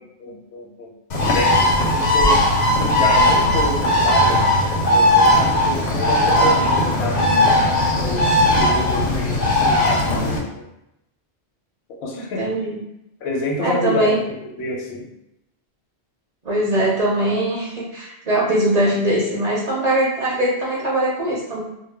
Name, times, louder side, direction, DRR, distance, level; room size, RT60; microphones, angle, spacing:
voice 1, 0.0-2.4 2.8-4.5 4.9-7.2 8.0-10.7 12.0-12.5 13.2-15.1, left 2 dB, 80° left, 0 dB, 0.8 m, -28 dB
Bird, 1.1-10.4, left 1 dB, 55° left, 0.5 m, -17 dB
voice 2, 12.1-12.8 13.6-14.2 16.4-21.6, right 1 dB, 45° right, -5 dB, 0.6 m, -21 dB
2.1 x 2.0 x 3.3 m, 0.86 s
omnidirectional pair, 1.1 m